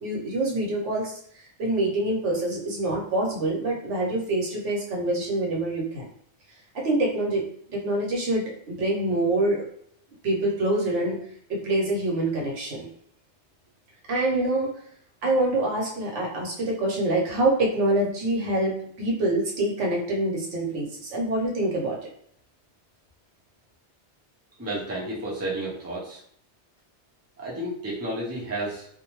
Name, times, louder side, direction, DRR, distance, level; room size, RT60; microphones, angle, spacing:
voice 1, 0.0-6.0 6.7-7.4 7.7-9.6 10.2-11.2 11.5-12.9 14.1-14.7 15.2-22.1, right 1 dB, 90° right, -2 dB, 1.1 m, -26 dB
voice 2, 24.6-26.2 27.4-28.9, right 1 dB, 20° right, -4 dB, 0.5 m, -31 dB
2.6 x 2.1 x 3.0 m, 0.65 s
omnidirectional pair, 1.2 m